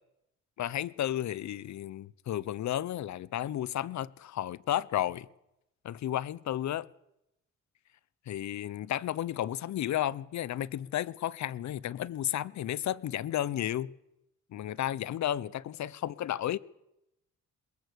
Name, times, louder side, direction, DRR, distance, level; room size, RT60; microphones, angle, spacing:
voice 1, 0.6-5.3 5.8-6.9 8.3-13.9 14.5-16.6, left 12 dB, 65° left, 1.0 m, -33 dB
22.0 x 21.5 x 8.2 m
cardioid pair, 90°, 30 cm